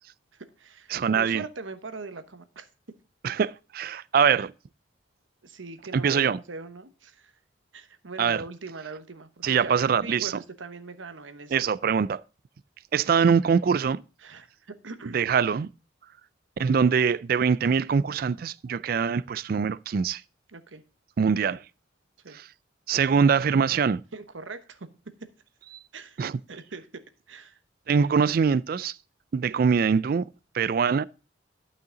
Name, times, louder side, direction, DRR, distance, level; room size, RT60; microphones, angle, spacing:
voice 1, 0.3-2.7 5.4-7.3 7.7-11.5 14.2-15.2 20.5-20.8 22.2-22.4 24.1-24.9 25.9-26.2 26.5-27.6, right 3 dB, 85° right, 1.1 m, -41 dB
voice 2, 0.9-1.4 3.2-4.5 5.9-6.4 8.2-8.4 9.4-10.4 11.5-12.2 12.9-14.0 15.1-15.7 16.6-20.2 21.2-21.6 22.3-22.5 22.9-24.0 26.2-26.4 27.9-29.0 29.3-30.3 30.5-31.1, right 6 dB, 50° right, 0.3 m, -23 dB
12.0 x 5.7 x 3.8 m
head